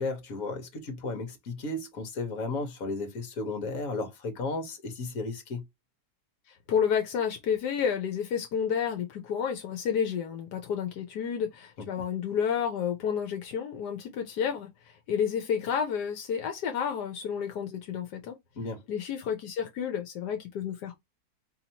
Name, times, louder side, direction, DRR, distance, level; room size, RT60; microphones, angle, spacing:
voice 1, 0.0-5.6 18.6-18.8, left 3 dB, 60° left, 1.5 m, -34 dB
voice 2, 6.5-18.4 18.9-21.0, left 7 dB, 80° left, 1.3 m, -30 dB
4.6 x 2.8 x 2.8 m
omnidirectional pair, 1.7 m